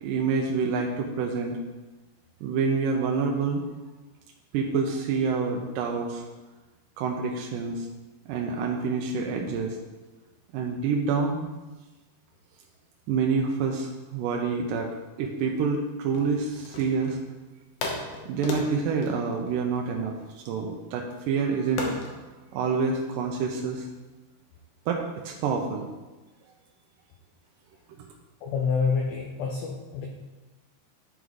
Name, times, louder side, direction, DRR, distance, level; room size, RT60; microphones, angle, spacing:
voice 1, 0.0-1.6 2.4-3.6 4.5-6.2 7.0-7.9 8.3-9.8 10.5-11.5 13.1-14.9 15.2-17.2 18.3-21.9 22.5-23.9 24.9-25.9, right 5 dB, 80° right, 1 dB, 2.0 m, -27 dB
sound 1, 16.1-17.3 17.8-20.3 21.8-22.2, left 3 dB, 70° left, 2.1 m, -35 dB
voice 2, 28.4-30.1, left 5 dB, 90° left, 1 dB, 1.8 m, -27 dB
11.0 x 3.9 x 4.7 m, 1.2 s
omnidirectional pair, 4.5 m